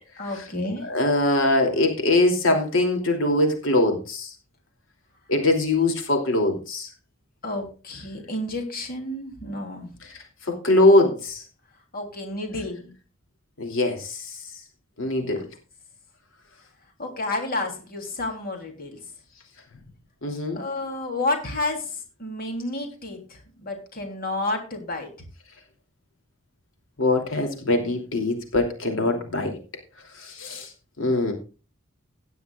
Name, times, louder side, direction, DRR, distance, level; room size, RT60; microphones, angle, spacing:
voice 1, 0.2-0.9 7.4-9.9 11.9-12.9 15.1-15.4 17.0-19.0 20.5-25.1, left 2 dB, 45° left, 3 dB, 3.2 m, -31 dB
voice 2, 0.9-4.3 5.3-6.9 10.5-11.4 13.6-14.3 15.0-15.5 20.2-20.6 27.0-29.6 30.2-30.7 31.0-31.3, left 2 dB, 70° left, 3 dB, 2.9 m, -22 dB
17.0 x 11.0 x 2.4 m, 0.32 s
head